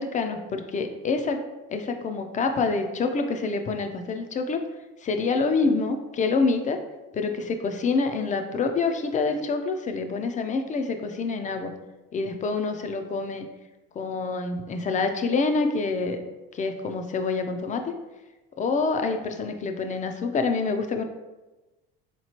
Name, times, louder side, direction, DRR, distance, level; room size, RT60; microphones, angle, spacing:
voice 1, 0.0-1.4 1.7-4.6 5.0-6.8 7.1-11.7 12.1-13.5 14.0-16.2 16.5-17.9 18.6-21.0, left 4 dB, 25° left, 6 dB, 0.4 m, -26 dB
3.9 x 3.0 x 2.9 m, 1.1 s
hypercardioid pair, 80°, 30 cm